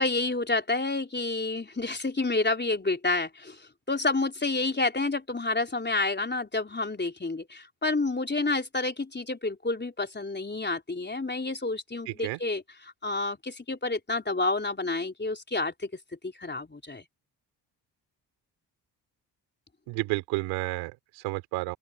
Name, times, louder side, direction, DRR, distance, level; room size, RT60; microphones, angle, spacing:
voice 1, 0.0-15.9 16.2-17.0, left 3 dB, 25° left, 3.9 m, -29 dB
voice 2, 12.1-12.4 19.9-21.8, right 22 dB, 90° right, 4.1 m, -31 dB
open air
supercardioid pair, 50°, 45 cm